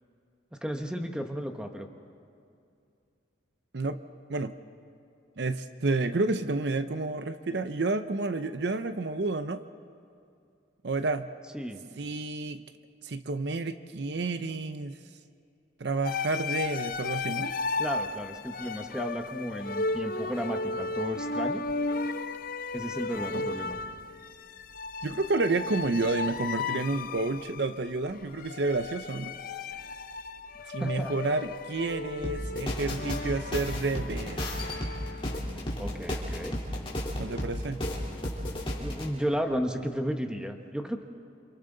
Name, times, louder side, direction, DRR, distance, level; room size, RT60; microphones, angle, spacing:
voice 1, 0.6-1.9 11.5-11.8 17.8-21.6 22.7-23.8 30.8-31.1 35.8-36.6 38.7-41.0, equal, 5° right, 4 dB, 1.2 m, -33 dB
voice 2, 5.4-9.6 10.8-11.3 12.0-12.6 13.0-15.0 15.8-17.5 23.3-23.5 25.0-29.3 30.7-34.4 37.2-37.8, right 3 dB, 60° right, 10 dB, 0.7 m, -30 dB
sound 1, 16.0-35.4, left 3 dB, 45° left, 0.6 m, -35 dB
sound 2, 32.2-39.1, left 1 dB, 30° left, 3.6 m, -33 dB
29.0 x 27.0 x 4.0 m, 2.5 s
head